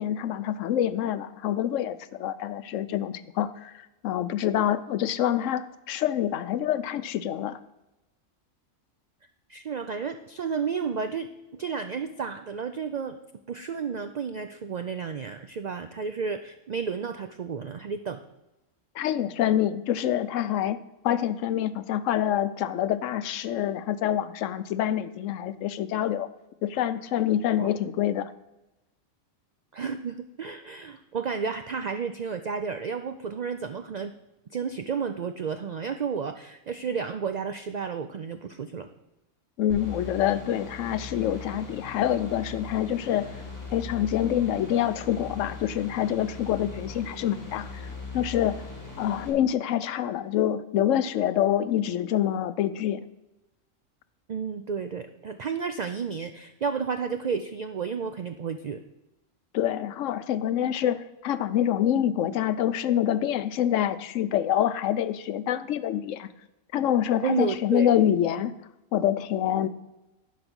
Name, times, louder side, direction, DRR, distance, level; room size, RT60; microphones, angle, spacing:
voice 1, 0.0-7.6 18.9-26.3 26.6-28.3 39.6-43.4 43.7-47.9 48.1-48.6 49.0-53.0 59.5-66.3 66.7-68.5 68.9-69.7, left 11 dB, 75° left, 14 dB, 0.9 m, -26 dB
voice 2, 9.5-13.2 13.5-18.2 27.6-27.7 29.7-34.1 34.5-38.9 54.3-58.8 67.2-67.9, right 6 dB, 80° right, 8 dB, 0.3 m, -32 dB
sound 1, 39.7-49.3, left 3 dB, 15° left, 2.1 m, -40 dB
11.5 x 5.1 x 6.1 m, 0.97 s
omnidirectional pair, 1.3 m